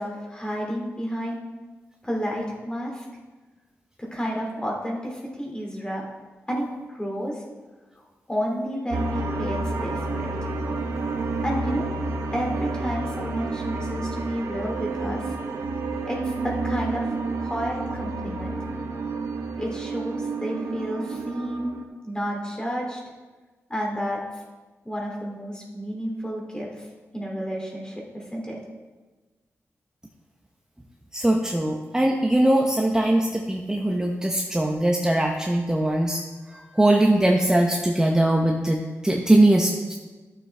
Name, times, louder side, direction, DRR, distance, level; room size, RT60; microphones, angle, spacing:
voice 1, 0.0-1.4 2.0-3.1 4.0-6.0 6.5-7.4 8.3-10.3 11.4-11.9 12.3-15.3 16.0-18.5 19.6-21.7 22.0-23.0 23.7-24.2 24.8-26.9 27.1-28.6, equal, 15° left, -2 dB, 2.5 m, -31 dB
sound 1, 8.9-21.8, right 3 dB, 75° right, 0.9 m, -30 dB
voice 2, 31.1-40.0, right 1 dB, 10° right, 1 dB, 0.8 m, -21 dB
12.5 x 7.5 x 3.4 m, 1.3 s
cardioid pair, 75°, 5 cm